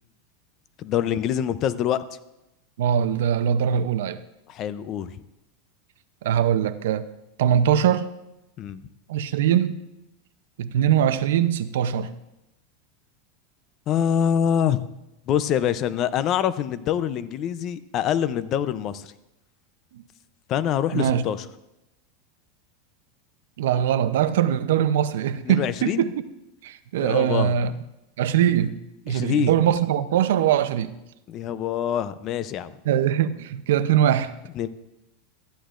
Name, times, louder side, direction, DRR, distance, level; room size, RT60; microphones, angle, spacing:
voice 1, 0.8-2.0 4.5-5.1 8.6-8.8 13.9-14.8 15.3-19.1 20.5-21.4 25.4-26.1 27.0-27.5 29.1-29.5 31.3-32.7 34.6-34.7, left 9 dB, 40° left, 14 dB, 0.5 m, -25 dB
voice 2, 2.8-4.2 6.2-7.1 7.4-8.1 9.1-9.7 10.6-12.1 19.9-20.0 20.9-21.2 23.6-26.1 26.6-27.7 28.2-28.8 29.1-30.9 32.9-34.3, right 9 dB, 80° right, 12 dB, 0.6 m, -22 dB
14.0 x 10.0 x 2.5 m, 0.90 s
supercardioid pair, 135°, 0 cm